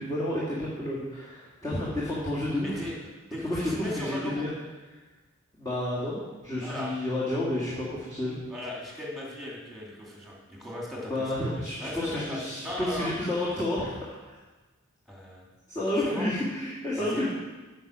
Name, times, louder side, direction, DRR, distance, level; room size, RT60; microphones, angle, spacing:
voice 1, 0.0-2.8 3.4-4.5 5.6-8.4 11.1-14.3 15.7-17.3, left 1 dB, 20° left, -9 dB, 1.9 m, -30 dB
voice 2, 2.6-2.9 3.3-4.5 6.6-6.9 8.5-11.3 11.8-13.1 15.1-15.5 16.0-16.3 17.0-17.3, left 1 dB, ahead, -4 dB, 2.5 m, -37 dB
9.5 x 5.4 x 6.2 m, 1.2 s
head